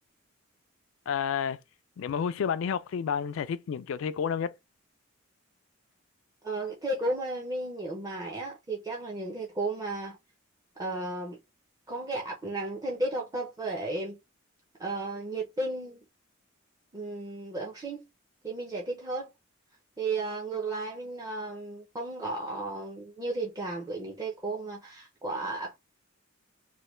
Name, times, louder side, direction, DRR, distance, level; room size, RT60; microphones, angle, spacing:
voice 1, 1.1-1.6 2.0-4.6, left 7 dB, 70° left, 0.3 m, -30 dB
voice 2, 6.4-10.2 10.8-11.4 11.9-14.2 14.8-16.0 16.9-18.0 18.4-19.3 20.0-25.8, right 2 dB, 15° right, 0.5 m, -34 dB
3.2 x 2.2 x 3.0 m
head